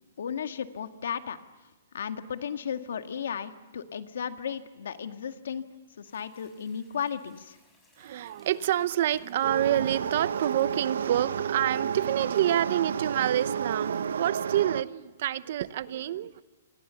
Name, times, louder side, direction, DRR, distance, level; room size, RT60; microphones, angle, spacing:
voice 1, 0.2-1.4 1.9-5.6 6.0-7.6, left 7 dB, 75° left, 1.9 m, -34 dB
sound 1, 6.0-14.3, left 2 dB, 10° left, 6.5 m, -64 dB
voice 2, 8.0-16.4, right 12 dB, 50° right, 0.9 m, -27 dB
sound 2, 9.4-14.8, right 7 dB, 85° right, 0.8 m, -31 dB
27.5 x 27.0 x 7.1 m
hypercardioid pair, 160°, 0 cm